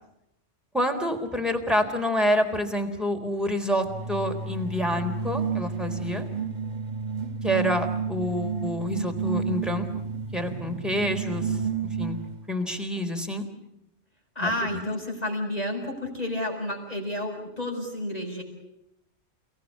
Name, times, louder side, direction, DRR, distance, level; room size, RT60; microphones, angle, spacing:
voice 1, 0.7-6.3 7.4-9.9 10.3-11.6 12.0-12.2 12.5-13.5 14.4-14.8, equal, ahead, 3 dB, 3.9 m, -27 dB
sound 1, 3.9-12.4, right 5 dB, 40° right, 1.4 m, -31 dB
voice 2, 14.3-18.4, left 1 dB, 35° left, 2 dB, 6.7 m, -30 dB
30.0 x 18.5 x 8.5 m, 0.84 s
omnidirectional pair, 1.2 m